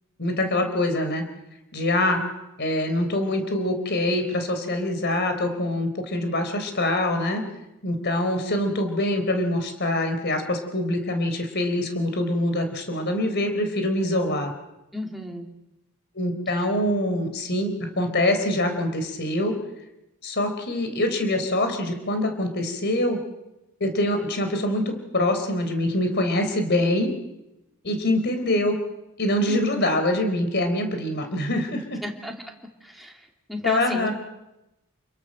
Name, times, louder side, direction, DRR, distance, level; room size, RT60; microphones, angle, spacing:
voice 1, 0.2-1.2 1.7-2.2 2.6-7.4 7.8-14.5 16.1-19.6 20.2-23.2 23.8-27.1 27.8-28.8 29.2-32.0 33.6-34.1, left 1 dB, 50° left, 6 dB, 3.8 m, -24 dB
voice 2, 14.9-15.5 29.5-29.6 32.0-32.3 32.8-33.2 33.5-34.1, left 1 dB, ahead, 1 dB, 2.8 m, -31 dB
28.5 x 22.0 x 6.5 m, 0.92 s
head